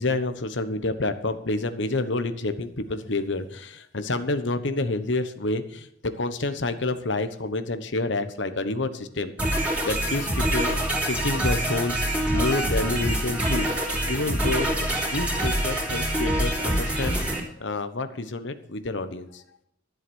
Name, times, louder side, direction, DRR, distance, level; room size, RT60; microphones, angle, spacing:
voice 1, 0.0-9.5 9.8-10.7 11.0-13.7 14.1-14.7 15.0-17.1 17.6-19.4, left 2 dB, 65° left, 10 dB, 1.1 m, -28 dB
sound 1, 9.4-17.4, right 1 dB, 5° right, 3.6 m, -25 dB
13.5 x 7.9 x 6.3 m, 0.77 s
head